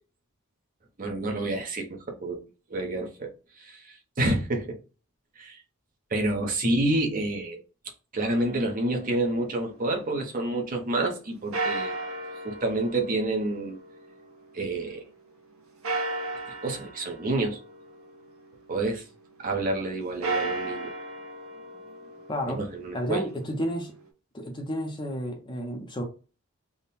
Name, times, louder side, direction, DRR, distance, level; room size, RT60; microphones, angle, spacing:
voice 1, 1.0-2.4 2.7-4.8 5.4-5.6 6.1-7.6 8.1-11.9 12.4-13.8 14.5-15.0 16.6-17.6 18.7-19.0 19.4-20.9 22.5-23.2, right 2 dB, 40° right, 0.8 m, -28 dB
sound 1, 8.3-10.4 11.5-14.9 15.8-18.8 20.1-24.1, right 2 dB, 65° right, 0.8 m, -36 dB
voice 2, 22.3-22.6 22.9-23.9 24.3-26.0, equal, 20° left, 0.6 m, -31 dB
3.6 x 2.2 x 4.1 m
head